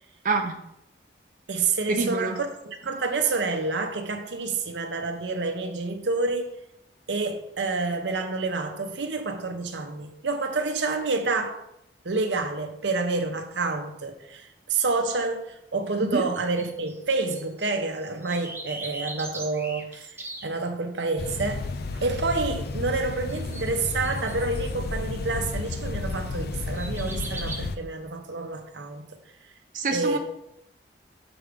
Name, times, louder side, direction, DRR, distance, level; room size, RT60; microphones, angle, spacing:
voice 1, 0.2-0.6 1.9-2.4 16.0-16.3 29.7-30.2, right 3 dB, 50° right, 0.6 m, -26 dB
voice 2, 1.5-6.5 7.1-11.6 12.0-29.1 29.9-30.2, right 3 dB, 85° right, 0.8 m, -28 dB
sound 1, 16.3-17.7 18.0-20.5 22.7-23.0 23.3-24.6 26.0-26.4 26.7-27.6, right 2 dB, 15° right, 0.7 m, -39 dB
sound 2, 21.2-27.8, left 3 dB, 60° left, 0.4 m, -32 dB
6.9 x 5.0 x 3.6 m
head